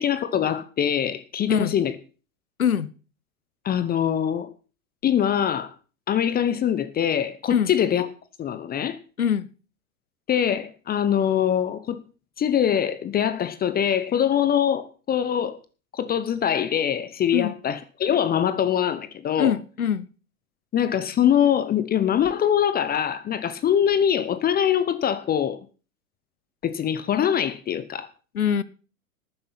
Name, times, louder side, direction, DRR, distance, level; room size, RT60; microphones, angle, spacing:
voice 1, 0.0-2.0 3.6-4.5 5.0-5.7 6.1-8.1 8.4-9.0 10.3-12.0 12.4-15.6 15.9-19.6 20.7-25.6 26.6-28.1, left 9 dB, 20° left, 0.9 m, -23 dB
voice 2, 19.4-20.1 28.3-28.6, left 8 dB, 85° left, 1.0 m, -23 dB
12.5 x 9.9 x 5.8 m
hypercardioid pair, 100°, 42 cm